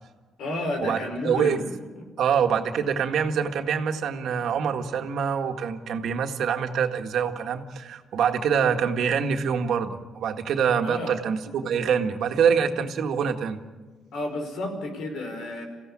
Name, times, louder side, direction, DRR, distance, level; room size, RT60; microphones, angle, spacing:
voice 1, 0.4-2.0 10.8-11.1 14.1-15.6, left 2 dB, 80° left, 5 dB, 5.1 m, -31 dB
voice 2, 1.2-1.6 2.2-13.6, right 7 dB, 75° right, 5 dB, 1.8 m, -25 dB
28.5 x 16.0 x 8.8 m, 1.4 s
cardioid pair, 105°, 0 cm